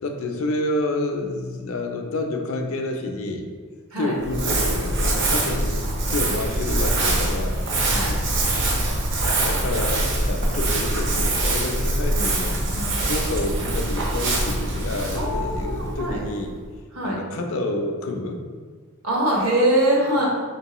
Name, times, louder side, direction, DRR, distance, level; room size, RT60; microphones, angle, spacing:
voice 1, 0.0-3.5 4.0-5.8 6.1-8.0 9.4-16.5 17.0-18.4, left 2 dB, 65° left, 3 dB, 0.5 m, -29 dB
Crumpling crinkling, 4.2-16.6, right 1 dB, 55° right, 0.7 m, -24 dB
voice 2, 12.8-13.1 15.1-16.2 16.9-17.2 19.0-20.3, right 1 dB, 70° right, -3 dB, 1.1 m, -23 dB
4.6 x 2.9 x 3.0 m, 1.5 s
head